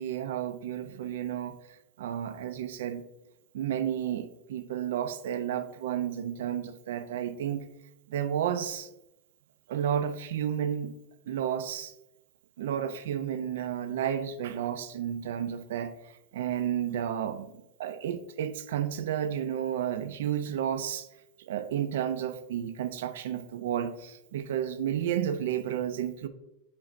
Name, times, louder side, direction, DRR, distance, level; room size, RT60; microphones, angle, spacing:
voice 1, 0.0-1.6 2.0-3.0 3.5-7.6 8.1-8.9 9.7-10.9 11.3-11.9 12.6-17.5 17.8-21.1 21.4-26.3, right 9 dB, 85° right, 0.3 m, -32 dB
5.0 x 4.3 x 2.5 m
supercardioid pair, 170°, 0 cm